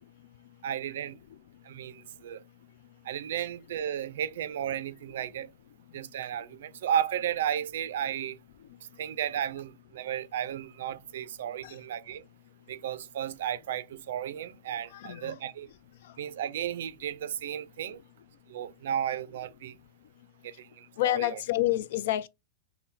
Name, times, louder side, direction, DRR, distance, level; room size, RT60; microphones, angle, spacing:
voice 1, 0.6-1.2 1.6-2.4 3.0-5.5 5.9-8.4 9.0-12.2 12.7-15.7 16.2-18.0 18.5-19.7 20.4-21.4, right 10 dB, 80° right, 0.4 m, -34 dB
voice 2, 14.9-15.3 21.0-22.3, left 16 dB, 65° left, 0.3 m, -28 dB
5.6 x 2.1 x 2.6 m
supercardioid pair, 160°, 0 cm